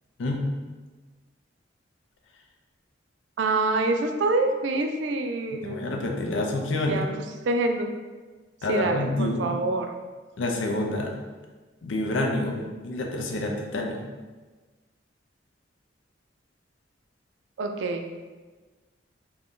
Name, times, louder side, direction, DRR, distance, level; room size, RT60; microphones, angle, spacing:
voice 1, 3.4-5.8 6.9-7.1 7.5-7.9 8.7-9.9 17.6-18.0, right 2 dB, 70° right, 4 dB, 0.3 m, -26 dB
voice 2, 5.6-7.0 8.6-9.4 10.4-11.1 11.8-14.0, left 2 dB, 80° left, 2 dB, 0.4 m, -28 dB
2.5 x 2.2 x 3.5 m, 1.3 s
head